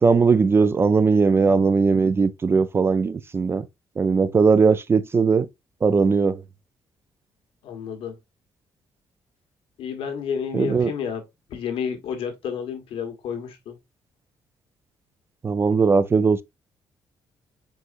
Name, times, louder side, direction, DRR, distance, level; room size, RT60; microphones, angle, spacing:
voice 1, 0.0-3.7 4.0-5.5 5.8-6.4 10.5-10.9 15.4-16.4, right 4 dB, 25° right, 0.4 m, -19 dB
voice 2, 7.6-8.2 9.8-13.8, left 7 dB, 90° left, 1.4 m, -31 dB
4.7 x 4.1 x 2.5 m
cardioid pair, 125°, 9 cm